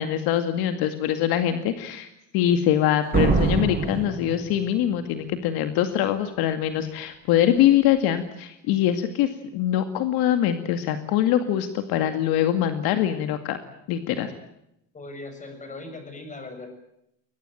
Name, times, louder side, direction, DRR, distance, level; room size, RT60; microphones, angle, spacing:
voice 1, 0.0-2.1 2.3-13.6 13.9-14.3, left 11 dB, 70° left, 8 dB, 2.2 m, -23 dB
Slam, 3.1-5.0, right 4 dB, 25° right, 6.8 m, -24 dB
voice 2, 14.9-16.7, left 2 dB, 20° left, 7 dB, 6.9 m, -39 dB
23.0 x 20.0 x 9.1 m, 0.81 s
cardioid pair, 130°, 38 cm